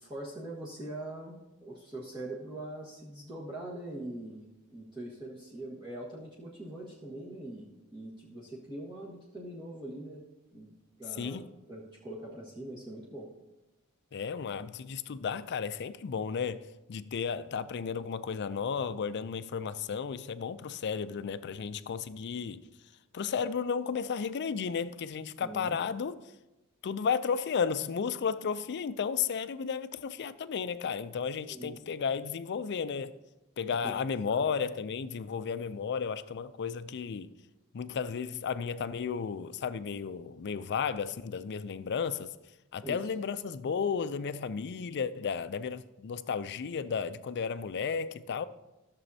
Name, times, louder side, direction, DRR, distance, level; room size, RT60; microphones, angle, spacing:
voice 1, 0.0-10.2 10.5-11.4 11.7-13.3 25.4-25.8 31.5-31.8 34.2-34.5 42.8-43.0, right 1 dB, 20° right, 1.5 m, -43 dB
voice 2, 11.2-11.5 14.1-22.6 23.1-26.2 26.8-33.1 33.6-37.3 37.7-42.3 42.7-48.5, left 6 dB, 50° left, 0.4 m, -33 dB
14.0 x 6.9 x 2.7 m
head